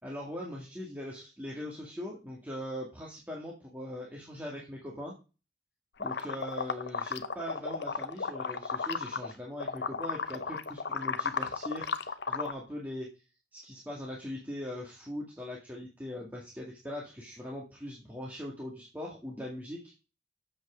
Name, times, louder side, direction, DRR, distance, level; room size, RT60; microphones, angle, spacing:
voice 1, 0.0-5.1 6.0-13.1 13.5-19.9, left 1 dB, 10° right, -3 dB, 2.0 m, -40 dB
sound 1, 6.0-9.3 9.6-12.5, left 5 dB, 70° left, 0.8 m, -34 dB
7.6 x 6.1 x 6.2 m, 0.31 s
head